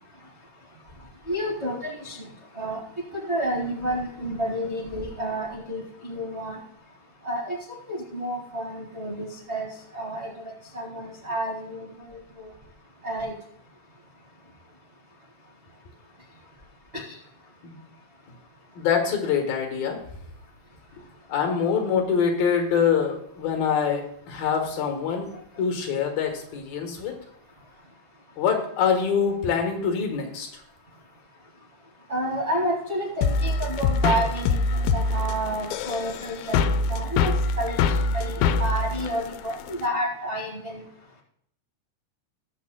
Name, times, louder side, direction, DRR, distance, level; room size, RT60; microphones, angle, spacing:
voice 1, 1.3-2.3 2.5-2.8 3.1-6.6 7.2-7.6 7.9-9.7 9.9-12.5 13.0-13.3 16.9-17.2 32.1-37.3 37.6-40.8, right 1 dB, 75° right, -4 dB, 0.6 m, -30 dB
voice 2, 18.8-20.0 21.3-25.3 25.6-27.2 28.4-30.6, left 7 dB, 70° left, 3 dB, 2.9 m, -25 dB
sound 1, 33.2-39.9, left 4 dB, 85° left, 2.0 m, -24 dB
20.0 x 7.0 x 2.2 m, 0.69 s
omnidirectional pair, 4.6 m